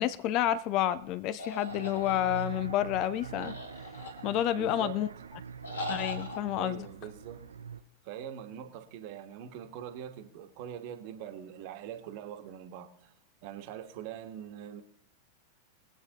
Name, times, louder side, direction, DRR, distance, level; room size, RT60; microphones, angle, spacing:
voice 1, 0.0-3.6 4.2-5.1 5.9-6.8, left 12 dB, 40° left, 0.5 m, -29 dB
sound 1, 1.4-2.7 3.4-4.6 5.6-6.4, left 2 dB, 75° left, 2.3 m, -40 dB
sound 2, 1.7-7.8, right 6 dB, 70° right, 0.6 m, -43 dB
voice 2, 4.5-5.0 6.5-7.4 8.0-13.1 13.4-14.8, right 10 dB, 45° right, 1.3 m, -43 dB
22.5 x 8.1 x 2.9 m
figure-of-eight pair, 90°, 0 cm